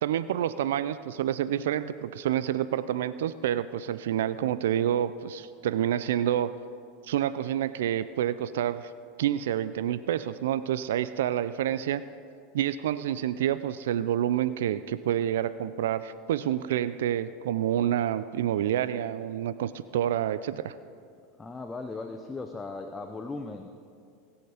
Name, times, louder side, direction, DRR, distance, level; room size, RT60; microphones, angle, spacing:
voice 1, 0.0-6.5 7.0-8.9 9.2-12.0 12.5-20.7, right 11 dB, 80° right, 14 dB, 0.4 m, -28 dB
voice 2, 21.4-23.7, left 3 dB, 15° left, 6 dB, 0.7 m, -37 dB
20.0 x 7.0 x 5.0 m, 2.3 s
hypercardioid pair, 105°, 0 cm